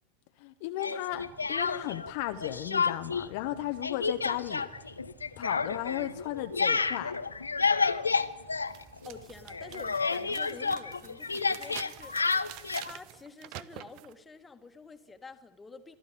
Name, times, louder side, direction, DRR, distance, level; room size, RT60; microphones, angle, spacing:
voice 1, 0.4-4.7 5.4-7.2, left 14 dB, 55° left, 0.9 m, -35 dB
Speech, 0.8-2.1 2.4-3.3 3.5-9.2 9.5-12.9, left 4 dB, 85° left, 0.8 m, -30 dB
sound 1, 1.1-13.2, right 6 dB, 35° right, 6.4 m, -57 dB
sound 2, 8.1-8.2 8.7-14.1, right 16 dB, 50° right, 0.7 m, -47 dB
voice 2, 9.0-16.0, left 4 dB, 15° left, 1.6 m, -49 dB
26.0 x 12.0 x 8.4 m
figure-of-eight pair, 85°, 0 cm